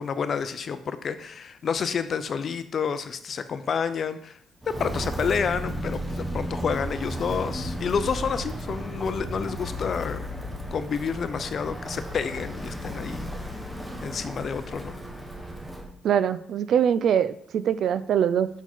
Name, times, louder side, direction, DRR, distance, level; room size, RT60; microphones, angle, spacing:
voice 1, 0.0-4.4 4.7-10.4 10.7-13.5 14.0-15.0, left 6 dB, 55° left, 11 dB, 0.6 m, -29 dB
Walk footsteps, 4.6-15.9, equal, 10° right, 1.2 m, -34 dB
voice 2, 16.0-18.5, right 9 dB, 70° right, 14 dB, 0.4 m, -23 dB
5.8 x 4.5 x 4.3 m, 0.67 s
cardioid pair, 90°, 0 cm